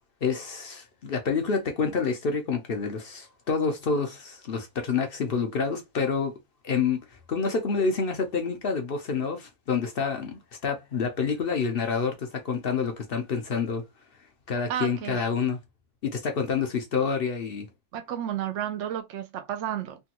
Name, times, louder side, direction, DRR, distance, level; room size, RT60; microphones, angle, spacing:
voice 1, 0.2-6.4 6.6-7.0 7.3-13.8 14.5-15.6 16.0-17.7, left 5 dB, 55° left, 0.6 m, -28 dB
voice 2, 14.7-15.2 17.9-20.0, right 10 dB, 65° right, 0.8 m, -32 dB
3.3 x 2.2 x 2.8 m
omnidirectional pair, 1.6 m